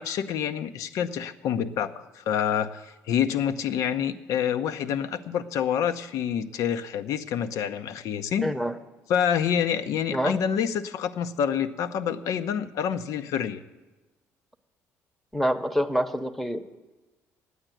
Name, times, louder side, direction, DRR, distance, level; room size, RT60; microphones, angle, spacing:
voice 1, 0.0-8.5 9.1-13.6, left 8 dB, 75° left, 12 dB, 0.7 m, -27 dB
voice 2, 8.4-8.8 10.1-10.4 15.3-16.7, equal, 5° left, 11 dB, 0.8 m, -26 dB
9.5 x 9.0 x 9.0 m, 1.2 s
cardioid pair, 100°, 6 cm